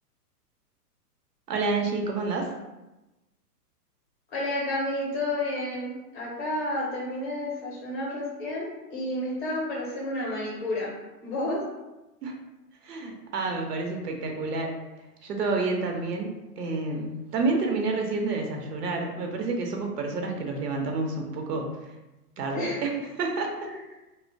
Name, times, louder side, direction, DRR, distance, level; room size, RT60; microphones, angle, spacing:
voice 1, 1.5-2.5 12.2-12.3 12.8-14.7 15.2-21.8 22.4-22.9 23.2-23.7, right 3 dB, 80° right, 2 dB, 0.7 m, -29 dB
voice 2, 4.3-10.9 11.2-11.6 22.5-22.8 23.6-23.8, left 1 dB, 25° left, -4 dB, 0.6 m, -31 dB
2.5 x 2.1 x 2.5 m, 1.0 s
hypercardioid pair, 130°, 47 cm